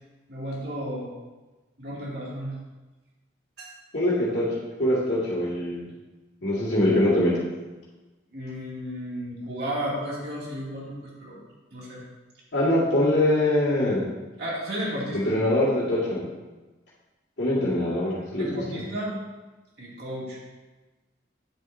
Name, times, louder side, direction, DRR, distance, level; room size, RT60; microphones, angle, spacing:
voice 1, 0.3-1.1 1.8-2.6 3.6-3.7 8.3-11.4 11.7-12.0 14.4-15.4 18.4-19.2 19.8-20.4, equal, 60° right, -6 dB, 2.5 m, -33 dB
voice 2, 3.9-4.4 4.8-5.9 6.4-7.4 12.5-14.0 15.1-16.3 17.4-18.5, left 1 dB, 70° left, -8 dB, 2.0 m, -23 dB
9.9 x 7.4 x 2.7 m, 1.2 s
head